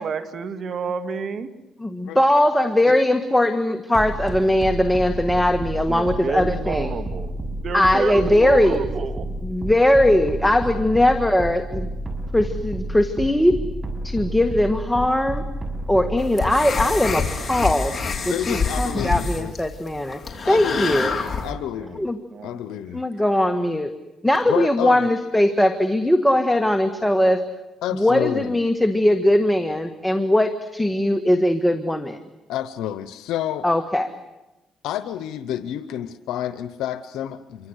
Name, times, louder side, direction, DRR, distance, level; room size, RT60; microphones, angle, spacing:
voice 1, 0.0-1.5 5.9-7.4 7.6-9.3 21.0-22.0 22.3-22.8, right 6 dB, 55° right, 9 dB, 2.3 m, -30 dB
voice 2, 1.8-6.9 7.7-8.8 9.4-11.9 12.3-13.6 14.0-15.4 15.9-18.0 18.3-20.2 20.5-21.1 22.0-22.2 22.9-23.9 24.2-27.5 27.9-32.2 33.6-34.1, left 1 dB, 5° left, 7 dB, 1.6 m, -20 dB
sound 1, 3.9-16.2, right 2 dB, 25° right, 6.6 m, -30 dB
voice 3, 10.5-11.0 18.2-19.6 20.4-22.1 22.4-23.0 24.5-25.1 27.8-28.5 32.5-33.6 34.8-37.7, left 11 dB, 90° left, 11 dB, 0.9 m, -29 dB
sound 2, 16.2-21.5, left 4 dB, 35° left, 4.6 m, -27 dB
27.5 x 24.5 x 8.1 m, 1.0 s
cardioid pair, 90°, 0 cm